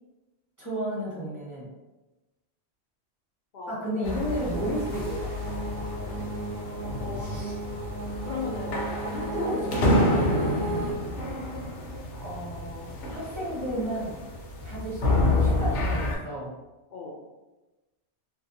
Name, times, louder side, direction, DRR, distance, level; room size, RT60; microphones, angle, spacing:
voice 1, 0.6-1.7 3.7-5.3 7.2-7.5 9.3-10.1 10.7-11.0 12.2-14.2 14.6-16.5, equal, 15° right, -8 dB, 0.9 m, -33 dB
sound 1, 4.0-16.2, left 1 dB, 75° left, 0.9 m, -29 dB
sound 2, 4.5-10.9, right 1 dB, 60° right, 0.7 m, -34 dB
voice 2, 5.8-6.2 7.0-7.3 8.2-9.6 10.3-10.5 16.9-17.2, left 4 dB, 60° left, -5 dB, 0.5 m, -37 dB
2.7 x 2.2 x 2.6 m, 1.1 s
omnidirectional pair, 1.2 m